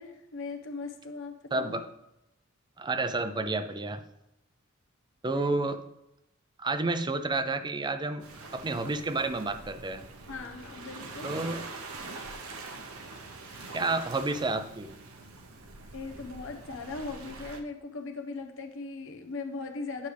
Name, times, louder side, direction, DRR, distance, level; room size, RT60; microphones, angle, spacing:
voice 1, 0.0-1.7 5.3-5.6 10.3-11.4 15.9-20.1, left 3 dB, 65° left, 5 dB, 0.9 m, -39 dB
voice 2, 1.5-1.9 2.8-4.0 5.2-5.8 6.6-8.2 8.5-10.0 11.2-11.7 13.7-14.9, right 3 dB, 20° right, 9 dB, 0.5 m, -30 dB
Waves surf, 8.2-17.6, right 3 dB, 80° right, 1.0 m, -44 dB
9.5 x 6.4 x 3.4 m, 0.87 s
head